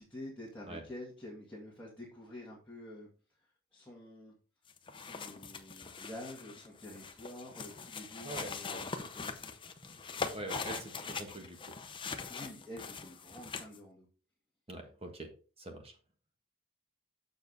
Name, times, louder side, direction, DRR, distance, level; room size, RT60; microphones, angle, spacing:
voice 1, 0.0-3.1 3.7-4.3 4.9-9.5 12.3-14.1, left 1 dB, 5° left, -5 dB, 2.0 m, -48 dB
sound 1, 4.7-13.8, left 4 dB, 25° left, 0.7 m, -42 dB
voice 2, 8.2-8.8 10.3-11.7 14.7-15.3 15.6-15.9, right 2 dB, 30° right, 4 dB, 1.3 m, -44 dB
7.0 x 6.7 x 4.0 m, 0.36 s
head